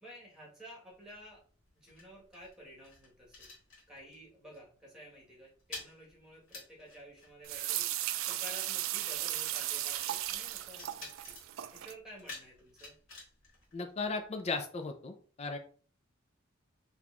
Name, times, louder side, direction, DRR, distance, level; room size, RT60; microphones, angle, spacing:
voice 1, 0.0-1.4 1.7-3.5 3.9-7.9 8.2-11.3 11.7-13.0, equal, 5° right, -3 dB, 1.4 m, -52 dB
sound 1, 0.9-4.3 4.5-4.8 5.1-14.5, left 3 dB, 80° left, 1.7 m, -52 dB
sound 2, 7.4-11.9, right 13 dB, 85° right, 0.3 m, -36 dB
voice 2, 13.7-15.6, left 3 dB, 30° left, 6 dB, 0.4 m, -36 dB
3.8 x 2.9 x 2.4 m, 0.42 s
head